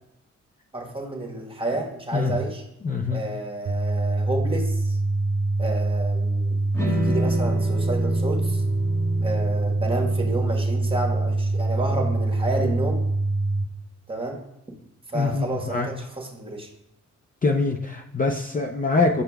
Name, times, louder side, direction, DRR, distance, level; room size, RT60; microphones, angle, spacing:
voice 1, 0.7-2.6 3.1-5.0 5.6-8.6 9.2-13.0 14.1-14.4 15.1-16.7, right 2 dB, 20° right, 1 dB, 1.3 m, -30 dB
voice 2, 2.8-3.2 15.1-15.9 17.4-19.2, left 3 dB, 30° left, 2 dB, 0.5 m, -24 dB
sound 1, 3.7-13.7, right 2 dB, 50° right, 0.9 m, -24 dB
sound 2, 6.7-13.0, equal, 10° left, 1.3 m, -32 dB
7.8 x 5.7 x 2.3 m, 0.86 s
cardioid pair, 80°, 29 cm